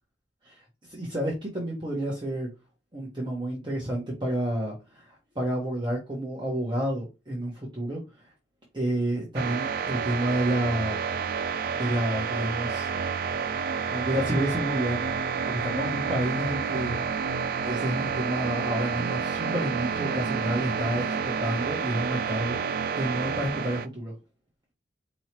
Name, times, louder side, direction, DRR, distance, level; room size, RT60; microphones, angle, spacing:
voice 1, 0.4-2.5 2.9-8.3 8.7-10.9 11.7-12.9 13.9-15.0 15.4-17.3 17.6-22.6 23.0-24.1, right 1 dB, 25° right, -2 dB, 1.2 m, -30 dB
sound 1, 9.3-23.9, right 6 dB, 55° right, 0.4 m, -29 dB
4.7 x 3.1 x 2.9 m, 0.27 s
head